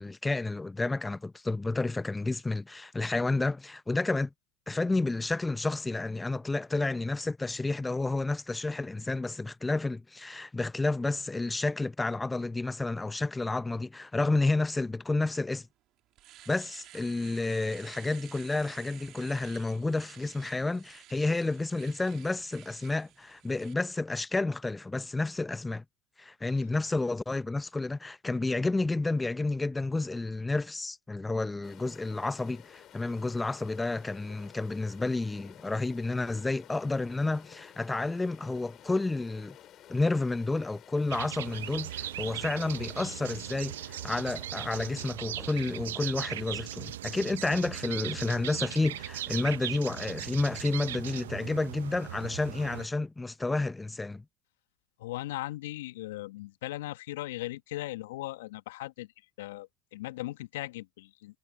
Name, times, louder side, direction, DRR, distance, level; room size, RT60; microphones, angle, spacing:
voice 1, 0.0-4.3 4.7-15.7 16.5-25.8 26.2-39.6 39.9-54.2, left 2 dB, 10° left, 0.6 m, -30 dB
Domestic sounds home sounds, 15.5-15.6 16.0-23.7, right 14 dB, 50° right, 2.6 m, -53 dB
sound 1, 31.6-45.1, left 11 dB, 45° left, 6.5 m, -53 dB
sound 2, 41.1-52.9, right 13 dB, 75° right, 0.5 m, -38 dB
voice 2, 55.0-59.1 59.4-61.4, left 17 dB, 70° left, 1.4 m, -38 dB
hypercardioid pair, 80°, 0 cm